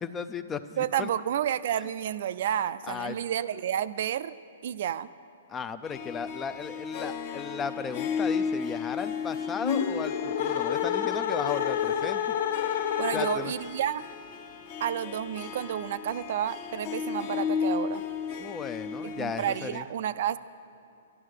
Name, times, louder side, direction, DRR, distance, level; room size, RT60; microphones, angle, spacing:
voice 1, 0.0-1.1 2.8-3.2 5.5-12.4 13.1-13.5 18.4-19.9, left 6 dB, 15° left, 12 dB, 0.4 m, -35 dB
voice 2, 0.8-4.3 4.6-5.1 13.0-14.0 14.8-18.0 19.0-20.4, right 10 dB, 55° right, 13 dB, 0.4 m, -30 dB
Harp, 5.8-19.8, left 6 dB, 45° left, 1.1 m, -35 dB
sound 1, 9.5-13.7, left 9 dB, 65° left, 0.7 m, -29 dB
11.5 x 11.0 x 6.5 m, 2.6 s
hypercardioid pair, 145°, 0 cm